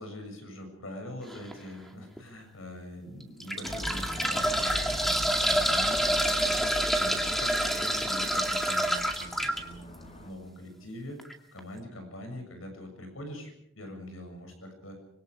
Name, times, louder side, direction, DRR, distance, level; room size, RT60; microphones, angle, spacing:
voice 1, 0.0-6.6 7.0-11.2 11.5-13.5 13.8-15.0, left 1 dB, 85° left, 5 dB, 7.1 m, -43 dB
sound 1, 1.3-1.5 2.2-2.3 3.2-9.6 11.2-11.3 11.6-11.7, equal, ahead, 2.2 m, -27 dB
sound 2, 3.6-10.3, equal, 35° left, 3.3 m, -41 dB
25.5 x 24.5 x 4.9 m, 0.73 s
head